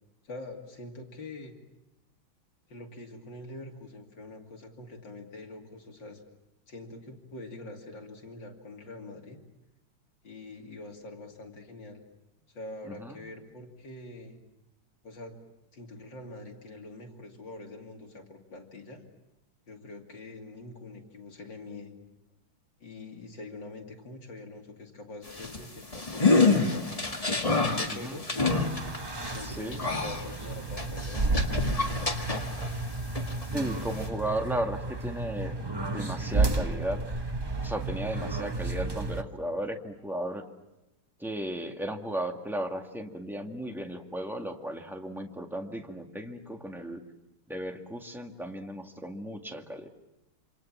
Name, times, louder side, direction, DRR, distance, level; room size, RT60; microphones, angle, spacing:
voice 1, 0.2-1.5 2.7-6.2 6.7-9.4 10.2-12.0 12.5-14.4 15.0-15.4 15.7-19.0 19.7-21.9 22.8-26.9 27.4-28.4 29.2-32.1, left 2 dB, 55° left, 2 dB, 3.3 m, -44 dB
voice 2, 12.8-13.2 27.9-28.2 29.4-29.8 33.5-37.0 37.6-40.4 41.2-47.0 47.5-49.9, right 1 dB, ahead, 3 dB, 1.8 m, -35 dB
sound 1, 25.3-32.8 33.1-34.1, left 3 dB, 15° left, 1.8 m, -28 dB
sound 2, 28.5-39.2, right 3 dB, 40° right, 0.3 m, -32 dB
28.0 x 26.0 x 7.4 m, 0.95 s
omnidirectional pair, 2.4 m